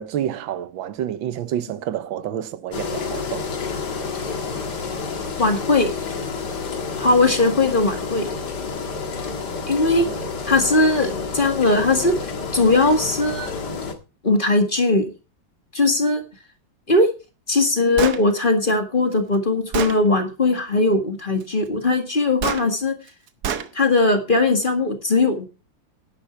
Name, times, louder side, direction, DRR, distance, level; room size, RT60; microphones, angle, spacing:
voice 1, 0.0-3.5 10.0-10.3, right 10 dB, 85° right, 1.6 m, -29 dB
Engine, 2.7-13.9, left 5 dB, 60° left, 2.3 m, -29 dB
voice 2, 5.4-5.9 7.0-8.3 9.7-10.1 10.4-12.1 12.5-13.6 14.2-15.1 15.7-16.2 16.9-17.1 17.5-23.0 23.7-25.5, left 2 dB, 25° left, 1.9 m, -19 dB
Gunshot gunfire, 18.0-18.2 19.1-19.2 19.7-20.0 22.4-22.6 23.4-23.7, right 8 dB, 60° right, 1.4 m, -25 dB
11.0 x 10.5 x 4.5 m
omnidirectional pair, 2.1 m